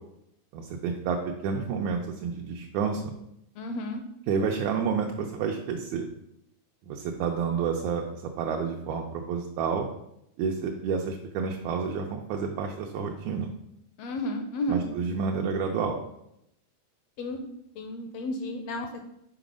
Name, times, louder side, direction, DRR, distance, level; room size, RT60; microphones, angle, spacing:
voice 1, 0.5-3.1 4.3-6.1 6.9-9.9 10.4-13.5 14.7-16.0, right 5 dB, 80° right, 1 dB, 2.0 m, -29 dB
voice 2, 3.6-4.0 14.0-14.8 17.2-17.4 17.7-19.0, equal, 75° left, 5 dB, 1.5 m, -32 dB
5.9 x 5.0 x 5.1 m, 0.80 s
omnidirectional pair, 3.4 m